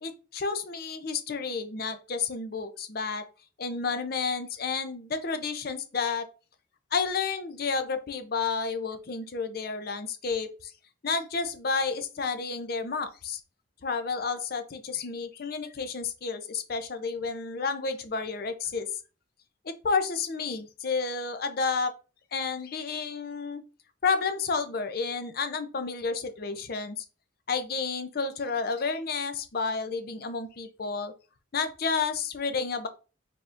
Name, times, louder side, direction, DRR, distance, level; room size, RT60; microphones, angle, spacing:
voice 1, 0.0-3.3 3.6-6.3 6.9-10.7 11.0-13.4 13.8-18.9 19.6-21.9 22.3-23.6 24.0-27.0 27.5-31.1 31.5-32.9, left 5 dB, 50° left, 9 dB, 0.5 m, -31 dB
4.7 x 3.5 x 2.5 m, 0.34 s
head